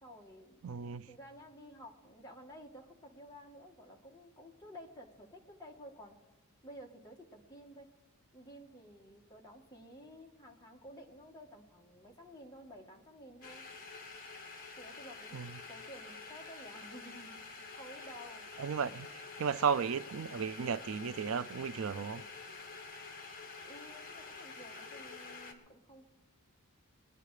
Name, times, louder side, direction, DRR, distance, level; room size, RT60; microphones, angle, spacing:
voice 1, 0.0-6.1 6.6-7.9 8.3-13.6 14.8-15.4 15.7-18.4 23.6-26.1, equal, 15° left, 1.8 m, -53 dB
voice 2, 0.6-1.1 15.3-15.5 18.6-19.1 19.4-22.2, right 6 dB, 65° right, 0.4 m, -34 dB
sound 1, 13.4-25.5, left 4 dB, 40° left, 1.8 m, -48 dB
22.0 x 9.9 x 4.9 m
head